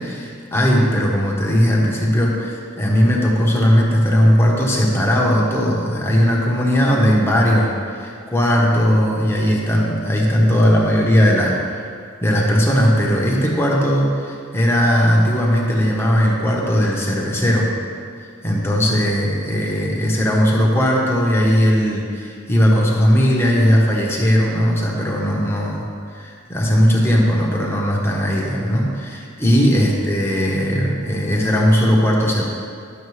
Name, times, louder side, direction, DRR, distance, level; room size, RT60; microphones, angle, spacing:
voice 1, 0.0-11.8 12.2-17.7 18.4-25.9 26.1-32.4, equal, 10° left, -3 dB, 1.1 m, -18 dB
10.5 x 6.5 x 3.2 m, 2.3 s
head